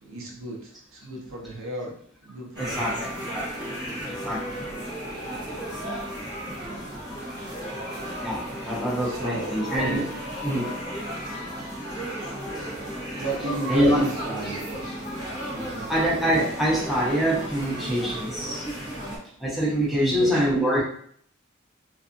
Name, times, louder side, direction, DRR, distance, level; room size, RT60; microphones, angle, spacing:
voice 1, 0.0-1.9 2.2-3.0 5.2-5.4 9.0-9.6 13.2-14.9 15.5-15.9 19.9-20.6, right 1 dB, 80° right, -2 dB, 0.7 m, -34 dB
sound 1, 2.5-19.2, equal, 20° right, 0.9 m, -34 dB
voice 2, 2.6-3.1 4.1-4.7 8.2-10.0 10.4-10.7 13.7-14.0 15.6-18.7 19.4-20.9, equal, ahead, -6 dB, 0.6 m, -25 dB
2.6 x 2.4 x 2.5 m, 0.63 s
head